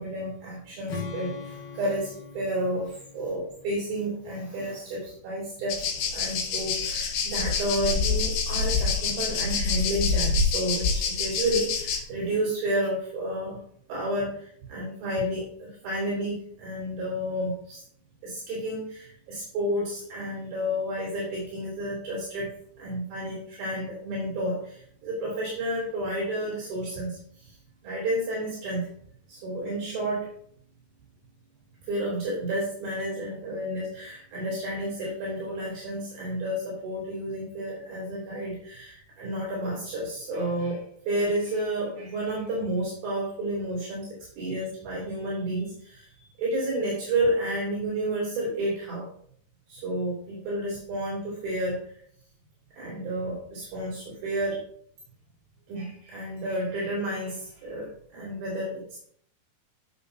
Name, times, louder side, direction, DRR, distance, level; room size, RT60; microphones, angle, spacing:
voice 1, 0.0-5.9 6.1-13.6 13.9-17.8 18.2-27.6 27.8-28.9 29.3-30.3 31.8-49.1 49.7-51.8 52.8-54.6 55.7-59.0, right 1 dB, 75° right, -6 dB, 5.0 m, -31 dB
Strum, 0.9-5.0, left 4 dB, 60° left, 3.4 m, -42 dB
sound 1, 5.7-12.0, left 5 dB, 85° left, 3.2 m, -26 dB
11.5 x 6.9 x 2.8 m, 0.62 s
omnidirectional pair, 4.4 m